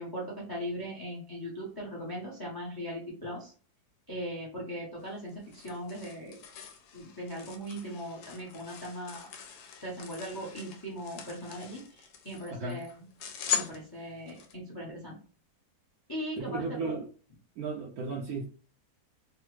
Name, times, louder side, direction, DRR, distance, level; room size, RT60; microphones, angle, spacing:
voice 1, 0.0-3.5 4.1-6.4 6.9-9.3 9.8-13.1 13.5-15.2 16.1-17.0, equal, 25° left, 0.4 m, -39 dB
sound 1, 5.0-14.5, left 8 dB, 80° left, 1.1 m, -40 dB
voice 2, 16.4-17.1 17.6-18.5, right 4 dB, 70° right, 1.0 m, -34 dB
3.2 x 2.0 x 3.0 m
omnidirectional pair, 1.8 m